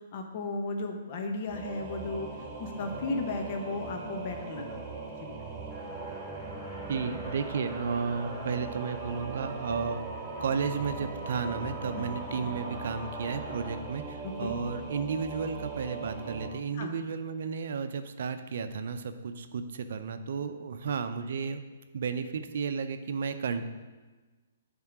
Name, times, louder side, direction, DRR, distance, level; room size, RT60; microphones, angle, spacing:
voice 1, 0.1-2.3 2.6-4.8 5.2-5.5 11.9-12.0 14.4-14.6 16.7-16.9, left 3 dB, 45° left, 3 dB, 0.9 m, -35 dB
Singing / Musical instrument, 1.5-16.5, right 3 dB, 15° right, 1.6 m, -40 dB
sound 1, 5.7-13.8, equal, ahead, 2.7 m, -44 dB
voice 2, 6.9-10.0 10.4-21.6 21.9-23.7, right 5 dB, 65° right, 9 dB, 0.5 m, -33 dB
8.5 x 3.7 x 6.0 m, 1.3 s
hypercardioid pair, 135°, 0 cm